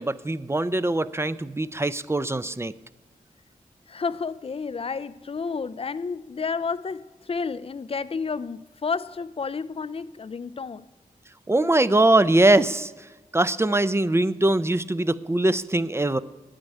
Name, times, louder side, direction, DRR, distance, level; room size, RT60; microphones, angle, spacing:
voice 1, 0.0-2.7 11.5-16.2, right 2 dB, 15° right, 0.5 m, -22 dB
voice 2, 3.9-10.9, left 5 dB, 40° left, 0.4 m, -31 dB
9.0 x 8.8 x 9.2 m
cardioid pair, 60°, 15 cm